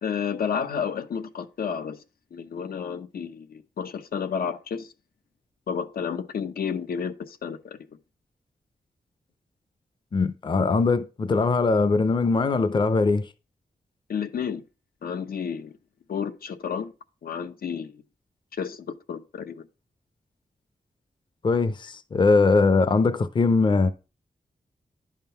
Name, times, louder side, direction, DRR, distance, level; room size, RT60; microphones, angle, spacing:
voice 1, 0.0-2.0 2.3-4.9 5.7-7.8 14.1-14.6 15.0-15.7 16.1-16.9 17.2-18.0 18.6-19.7, left 7 dB, 90° left, 0.8 m, -31 dB
voice 2, 10.1-13.3 21.4-23.9, left 4 dB, 30° left, 0.5 m, -21 dB
11.0 x 3.7 x 5.6 m
wide cardioid pair, 175°, 15 cm